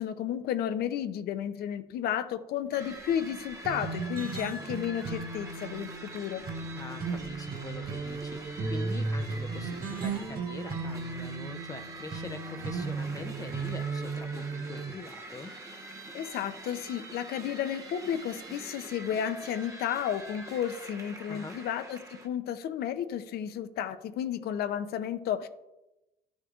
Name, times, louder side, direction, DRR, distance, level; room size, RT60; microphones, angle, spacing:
voice 1, 0.0-6.4 16.1-25.5, left 9 dB, 70° left, 11 dB, 0.6 m, -32 dB
sound 1, 2.7-22.3, right 2 dB, 20° right, 1.1 m, -45 dB
sound 2, 3.6-14.9, right 4 dB, 60° right, 2.0 m, -35 dB
voice 2, 6.7-15.5 21.3-21.6, left 3 dB, 20° left, 6 dB, 0.5 m, -43 dB
12.0 x 6.4 x 2.4 m, 0.96 s
cardioid pair, 110°, 17 cm